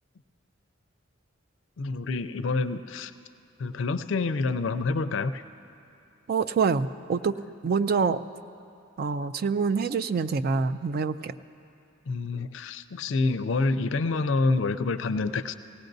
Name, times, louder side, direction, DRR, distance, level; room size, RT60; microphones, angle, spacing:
voice 1, 1.8-3.1 3.6-5.4 12.1-15.5, left 3 dB, 65° left, 11 dB, 0.4 m, -27 dB
voice 2, 6.3-7.3 7.6-8.2 9.0-11.4, right 5 dB, 50° right, 12 dB, 0.3 m, -26 dB
18.5 x 16.5 x 2.6 m, 2.7 s
head